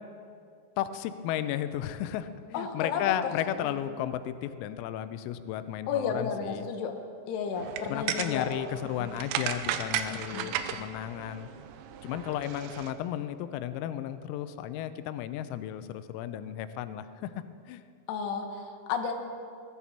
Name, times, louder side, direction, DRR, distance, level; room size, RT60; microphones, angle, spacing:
voice 1, 0.8-6.7 7.9-11.5 12.0-17.8, left 11 dB, 90° left, 12 dB, 3.4 m, -34 dB
voice 2, 2.5-3.2 3.6-3.7 5.9-6.9 7.3-8.5 9.0-9.1 10.1-10.5 18.1-19.1, left 6 dB, 70° left, 4 dB, 2.7 m, -32 dB
sound 1, 7.6-12.9, right 10 dB, 80° right, 2.8 m, -35 dB
20.0 x 14.0 x 4.2 m, 2.4 s
omnidirectional pair, 5.9 m